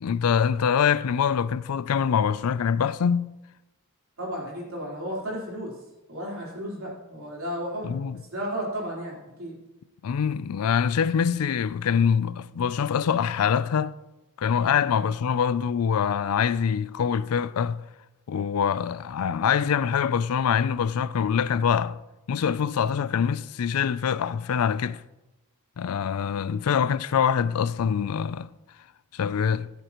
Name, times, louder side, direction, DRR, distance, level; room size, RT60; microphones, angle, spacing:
voice 1, 0.0-3.3 7.8-8.2 10.0-14.0 14.4-17.8 18.3-22.0 22.3-25.0 25.8-28.5 29.1-29.7, left 7 dB, 90° left, 0.4 m, -24 dB
voice 2, 4.2-5.7 6.1-7.9 8.3-9.6 14.7-14.9, equal, 70° right, 3.8 m, -33 dB
16.0 x 8.1 x 3.0 m
head